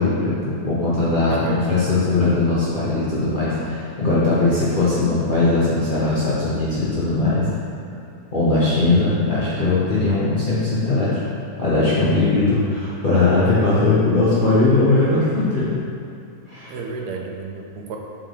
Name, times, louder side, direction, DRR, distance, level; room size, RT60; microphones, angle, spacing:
voice 1, 0.0-7.5 8.3-11.2 11.6-15.8 16.5-16.8, left 2 dB, 35° left, -11 dB, 1.1 m, -19 dB
voice 2, 1.3-1.7 16.7-18.0, right 4 dB, 85° right, 1 dB, 1.3 m, -31 dB
7.3 x 4.4 x 3.5 m, 2.6 s
omnidirectional pair, 1.7 m